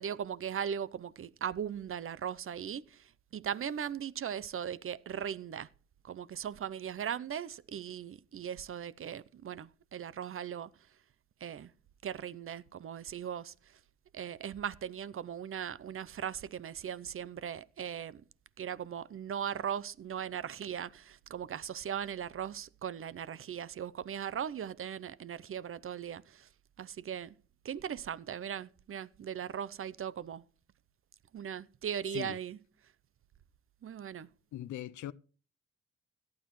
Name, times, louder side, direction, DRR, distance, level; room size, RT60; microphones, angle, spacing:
voice 1, 0.0-5.7 6.0-10.7 11.4-11.7 12.0-13.8 14.1-18.2 18.6-26.5 26.8-27.3 27.6-30.5 31.3-32.6 33.8-34.3, right 8 dB, 45° right, 0.6 m, -39 dB
voice 2, 34.5-35.1, left 12 dB, 75° left, 0.6 m, -40 dB
17.5 x 12.0 x 3.1 m
cardioid pair, 85°, 29 cm